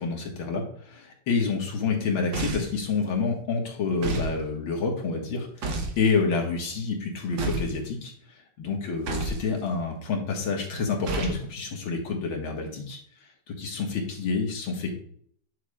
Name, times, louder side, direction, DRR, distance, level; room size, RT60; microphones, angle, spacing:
voice 1, 0.0-8.1 8.6-13.0 13.5-14.9, left 4 dB, 80° left, 1 dB, 2.3 m, -28 dB
sound 1, 2.3-2.8 4.0-4.4 5.6-6.0 7.4-7.8 9.1-9.4 11.0-11.4, right 3 dB, 65° right, 1.9 m, -29 dB
8.2 x 7.2 x 2.4 m, 0.63 s
omnidirectional pair, 2.2 m